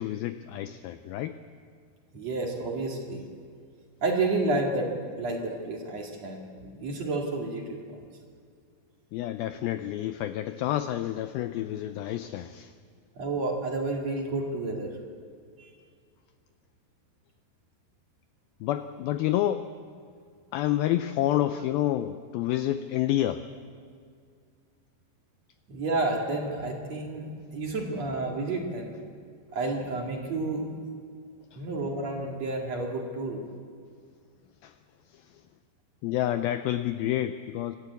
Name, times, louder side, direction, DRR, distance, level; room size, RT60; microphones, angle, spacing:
voice 1, 0.0-1.4 9.1-12.7 18.6-19.7 20.5-23.4 31.5-31.6 34.6-34.7 35.1-35.4 36.0-37.8, left 13 dB, 80° left, 10 dB, 2.1 m, -29 dB
voice 2, 2.1-3.2 4.0-8.0 13.2-15.0 15.6-15.7 25.7-28.9 29.5-30.7 31.5-33.4, right 2 dB, 45° right, 0 dB, 2.8 m, -30 dB
26.0 x 13.0 x 8.3 m, 2.2 s
omnidirectional pair, 4.8 m